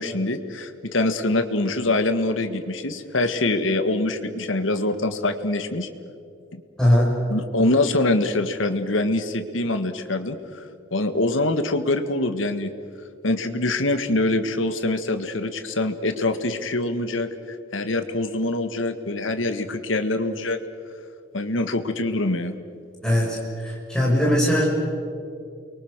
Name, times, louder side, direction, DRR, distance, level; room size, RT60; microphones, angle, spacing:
voice 1, 0.0-5.9 6.5-6.6 7.3-10.4 10.9-12.7 13.2-17.3 17.7-20.6 21.3-22.6, left 2 dB, 90° left, 9 dB, 1.7 m, -24 dB
voice 2, 6.8-7.1 23.0-24.6, equal, 5° left, -4 dB, 6.2 m, -20 dB
29.5 x 23.0 x 6.7 m, 2.5 s
head